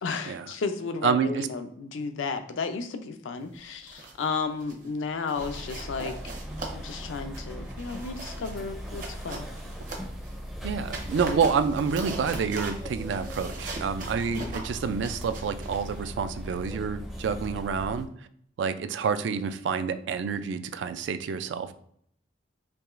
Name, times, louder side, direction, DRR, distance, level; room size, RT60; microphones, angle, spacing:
voice 1, 0.0-6.2 6.7-9.5, left 4 dB, 90° left, 8 dB, 0.4 m, -33 dB
voice 2, 1.0-1.5 10.6-18.1 18.6-21.7, right 6 dB, 65° right, 11 dB, 0.3 m, -28 dB
sound 1, 3.6-4.3 4.6-4.9 5.3-10.4 10.8-16.7, right 3 dB, 45° right, 0.8 m, -41 dB
sound 2, 5.4-18.1, equal, ahead, 0.4 m, -39 dB
4.7 x 3.0 x 2.4 m, 0.67 s
head